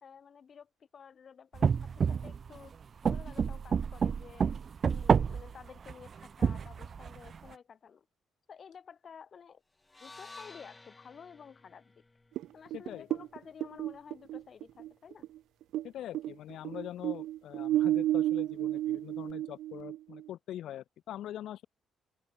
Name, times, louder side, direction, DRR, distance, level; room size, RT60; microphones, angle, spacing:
voice 1, 0.0-2.7 3.0-4.5 4.8-8.1 8.5-9.6 10.0-12.0 12.5-15.3, left 7 dB, 40° left, 3.5 m, -52 dB
sound 1, 1.5-2.6 3.1-5.5 5.9-7.4, right 6 dB, 35° right, 0.7 m, -28 dB
sound 2, 9.8-14.0, left 2 dB, 15° left, 7.2 m, -54 dB
sound 3, 12.4-15.9 16.1-20.3, right 13 dB, 85° right, 1.2 m, -32 dB
voice 2, 12.7-13.1 15.8-21.7, left 12 dB, 70° left, 3.9 m, -43 dB
open air
cardioid pair, 145°, 0 cm